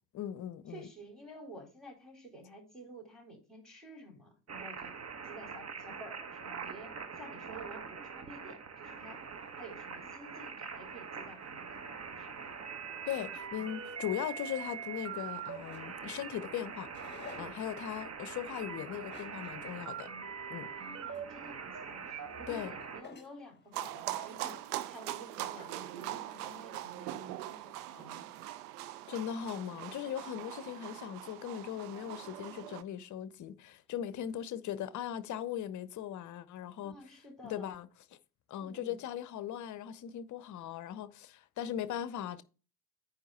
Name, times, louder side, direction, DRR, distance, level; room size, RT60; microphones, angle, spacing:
voice 1, 0.1-0.9 13.1-16.9 17.4-20.1 20.5-20.7 22.5-22.7 29.1-37.2 37.4-37.9 38.5-42.4, left 10 dB, 35° left, 0.8 m, -39 dB
voice 2, 0.7-5.0 5.2-9.3 9.6-12.4 20.8-28.3 36.8-37.7 38.6-39.0, right 1 dB, ahead, 4.0 m, -51 dB
sound 1, 4.5-23.0, right 6 dB, 30° right, 1.4 m, -43 dB
sound 2, 8.9-26.5, left 6 dB, 20° left, 1.4 m, -59 dB
sound 3, 23.7-32.8, right 14 dB, 65° right, 0.8 m, -42 dB
9.5 x 3.2 x 6.6 m
figure-of-eight pair, 55°, 49 cm